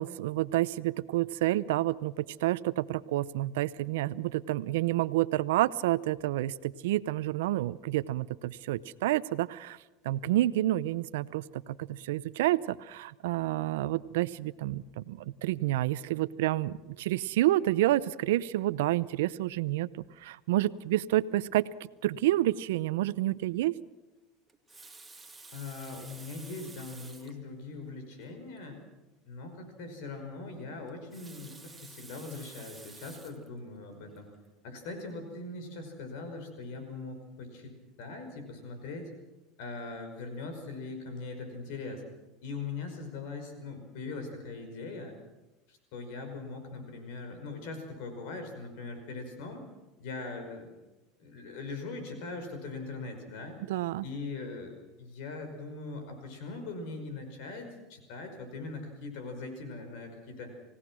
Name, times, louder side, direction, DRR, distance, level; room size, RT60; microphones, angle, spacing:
voice 1, 0.0-9.8 10.0-21.7 22.0-23.7 53.7-54.0, right 15 dB, 80° right, 17 dB, 0.7 m, -29 dB
Water tap faucet, 24.5-27.4 28.2-28.3 28.6-28.7 30.9-33.5 34.1-34.4, right 3 dB, 10° right, 2.2 m, -50 dB
voice 2, 25.5-28.8 29.2-34.3 34.6-39.1 39.6-42.0 42.4-45.2 45.7-49.7 50.0-50.7 51.2-53.6 54.0-60.5, left 3 dB, 70° left, 6 dB, 5.4 m, -41 dB
28.0 x 17.0 x 6.2 m, 1.1 s
supercardioid pair, 105°, 0 cm